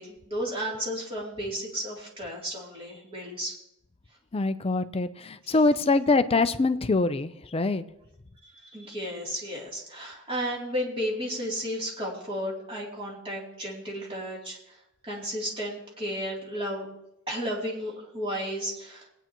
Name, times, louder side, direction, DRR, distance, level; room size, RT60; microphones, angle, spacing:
voice 1, 0.0-3.5 5.5-5.6 8.4-14.8 15.1-16.9 17.3-19.1, equal, 25° right, -4 dB, 3.0 m, -33 dB
voice 2, 4.3-7.8, left 3 dB, 25° left, 11 dB, 0.5 m, -24 dB
21.5 x 9.1 x 3.0 m, 0.83 s
head